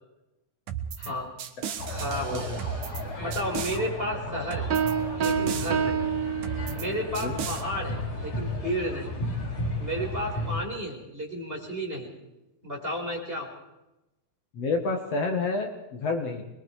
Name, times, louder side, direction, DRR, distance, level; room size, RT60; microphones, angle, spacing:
sound 1, 0.7-1.1 1.4-3.0 3.3-3.8 4.5-4.9 5.2-5.7 6.4-6.9 7.2-7.6, right 9 dB, 80° right, 2.9 m, -35 dB
voice 1, 1.0-1.3 1.9-2.5 3.2-4.7 5.2-6.0 6.7-9.1 9.8-12.1 12.6-13.5, equal, 15° right, 0 dB, 5.4 m, -32 dB
sound 2, 1.8-10.6, left 1 dB, 85° left, 8.0 m, -34 dB
sound 3, 4.7-7.1, right 8 dB, 55° right, 1.4 m, -28 dB
voice 2, 14.5-16.4, left 3 dB, 55° left, 3 dB, 2.7 m, -29 dB
25.5 x 22.0 x 4.9 m, 0.96 s
omnidirectional pair, 3.5 m